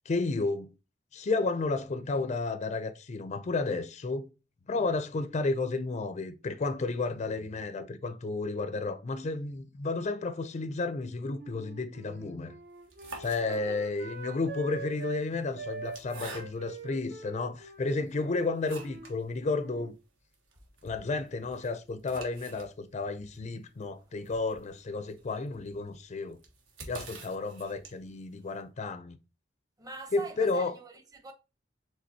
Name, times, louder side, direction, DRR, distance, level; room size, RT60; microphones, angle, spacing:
voice 1, 0.1-0.7 1.1-4.3 4.7-12.6 13.2-19.9 20.8-26.4 26.9-29.2 30.1-30.7, left 3 dB, 35° left, 0.4 m, -32 dB
Wind instrument woodwind instrument, 11.4-15.2 15.5-19.1 19.4-19.9, right 4 dB, 55° right, 0.8 m, -44 dB
sound 1, 12.7-14.0 14.8-16.9 17.5-17.6 18.1-19.2 19.5-19.6 19.9-20.0 20.3-28.2, right 3 dB, 75° right, 1.3 m, -48 dB
voice 2, 13.5-13.8 29.8-31.3, right 2 dB, 20° right, 0.8 m, -44 dB
5.1 x 3.8 x 2.7 m
head